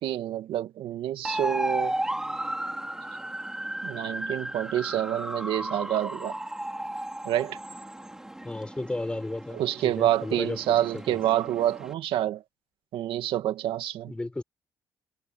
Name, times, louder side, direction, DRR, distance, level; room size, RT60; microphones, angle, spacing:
voice 1, 0.0-1.9 3.8-6.3 7.2-7.6 9.5-12.4 12.9-14.1, right 12 dB, 80° right, 2.0 m, -27 dB
sound 1, 1.2-11.9, right 1 dB, 5° right, 5.0 m, -35 dB
voice 2, 8.4-11.2 14.1-14.4, left 2 dB, 10° left, 6.2 m, -34 dB
cardioid pair, 125°, 9 cm